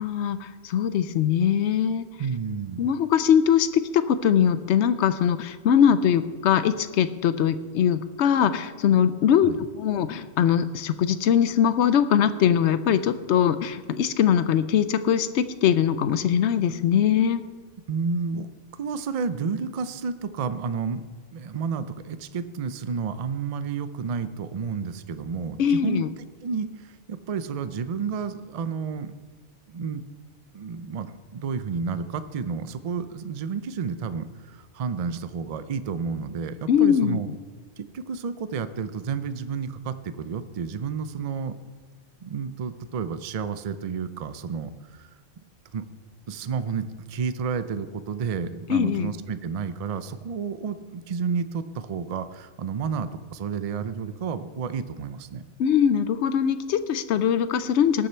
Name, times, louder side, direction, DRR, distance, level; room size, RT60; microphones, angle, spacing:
voice 1, 0.0-2.1 2.8-17.4 25.6-26.1 36.7-37.2 48.7-49.1 55.6-58.1, left 8 dB, 70° left, 13 dB, 0.9 m, -22 dB
voice 2, 2.2-2.8 9.4-9.6 17.9-18.5 18.8-21.0 21.3-29.1 29.7-30.0 30.5-37.3 37.8-41.6 42.2-45.1 45.7-45.8 46.3-55.4, right 5 dB, 55° right, 12 dB, 0.4 m, -31 dB
18.5 x 6.6 x 4.4 m, 1.4 s
omnidirectional pair, 1.3 m